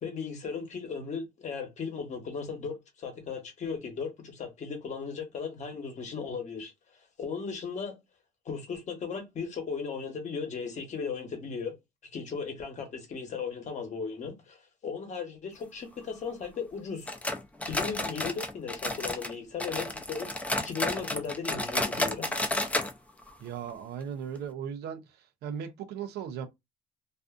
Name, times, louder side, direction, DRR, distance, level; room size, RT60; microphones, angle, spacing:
voice 1, 0.0-6.7 7.2-8.0 8.4-11.8 12.1-17.1 17.7-20.3 20.6-22.3, left 5 dB, 45° left, 1.0 m, -36 dB
sound 1, 17.1-19.3 19.6-22.9 23.2-23.3 23.7-23.8 24.4-24.5, left 1 dB, 10° left, 0.5 m, -31 dB
voice 2, 23.4-25.0 25.4-26.5, right 8 dB, 75° right, 0.6 m, -37 dB
2.5 x 2.4 x 2.4 m
cardioid pair, 110°, 17 cm